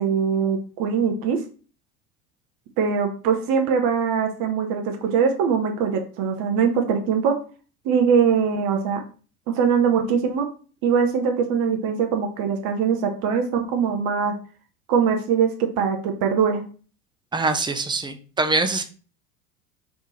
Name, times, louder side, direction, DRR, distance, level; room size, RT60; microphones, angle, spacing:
voice 1, 0.0-1.4 2.8-7.4 7.8-9.0 9.5-10.5 10.8-14.3 14.9-16.6, right 6 dB, 50° right, 4 dB, 1.0 m, -22 dB
voice 2, 17.3-18.8, right 3 dB, 10° right, 8 dB, 0.5 m, -23 dB
3.5 x 3.3 x 4.3 m, 0.38 s
hypercardioid pair, 75°, 44 cm